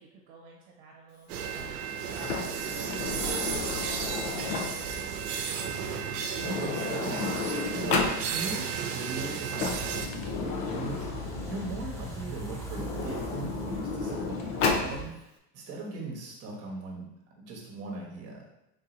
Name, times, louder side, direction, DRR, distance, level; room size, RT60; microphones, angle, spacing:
voice 1, 0.0-6.0 11.4-11.9, right 3 dB, 55° right, -3 dB, 0.9 m, -52 dB
sound 1, 1.3-10.1, right 7 dB, 80° right, 0.7 m, -33 dB
Sliding door, 2.1-5.0 6.0-6.1 6.3-8.2 9.3-11.8 12.6-14.9, left 4 dB, 55° left, 0.6 m, -32 dB
voice 2, 6.4-17.1 17.4-18.4, right 2 dB, 30° right, -1 dB, 1.1 m, -39 dB
sound 2, 9.7-15.0, equal, 5° left, 0.5 m, -40 dB
3.9 x 2.7 x 3.9 m, 0.86 s
supercardioid pair, 145°, 45 cm